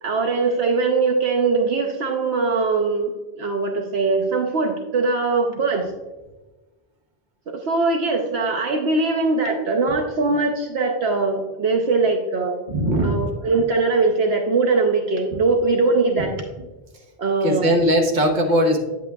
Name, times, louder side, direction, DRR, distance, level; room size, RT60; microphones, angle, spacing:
voice 1, 0.0-5.9 7.5-12.6 13.0-16.3 17.2-17.7, right 3 dB, 70° right, 3 dB, 1.0 m, -21 dB
voice 2, 12.7-13.2 16.1-16.3 17.4-18.8, equal, 45° right, 2 dB, 1.2 m, -19 dB
9.1 x 8.3 x 2.3 m, 1.2 s
omnidirectional pair, 1.1 m